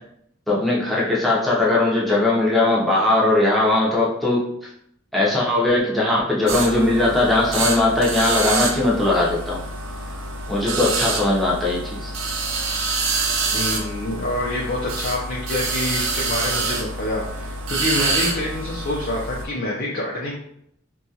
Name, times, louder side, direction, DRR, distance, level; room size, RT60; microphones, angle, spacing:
voice 1, 0.5-4.4 5.1-9.6 10.5-12.1, left 2 dB, ahead, -6 dB, 0.5 m, -19 dB
sound 1, 6.5-19.5, right 3 dB, 80° right, 0.5 m, -26 dB
voice 2, 13.5-20.3, left 1 dB, 45° left, -5 dB, 0.5 m, -27 dB
2.8 x 2.3 x 2.7 m, 0.72 s
head